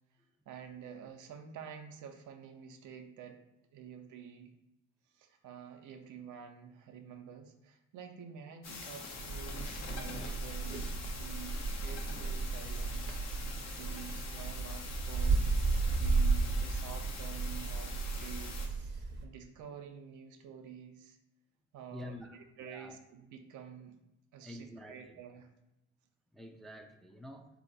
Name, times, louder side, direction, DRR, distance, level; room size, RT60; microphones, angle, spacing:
voice 1, 0.5-3.4 3.7-4.5 5.1-15.6 15.9-21.2 21.7-24.0 24.3-25.5, right 7 dB, 80° right, 0.6 m, -49 dB
sound 1, 8.6-18.7, left 4 dB, 60° left, 0.8 m, -45 dB
sound 2, 9.2-19.2, right 3 dB, 35° right, 0.7 m, -34 dB
voice 2, 21.9-22.9 24.4-25.2 26.3-27.5, left 1 dB, ahead, 0.4 m, -48 dB
4.2 x 2.8 x 3.9 m
cardioid pair, 90°, 30 cm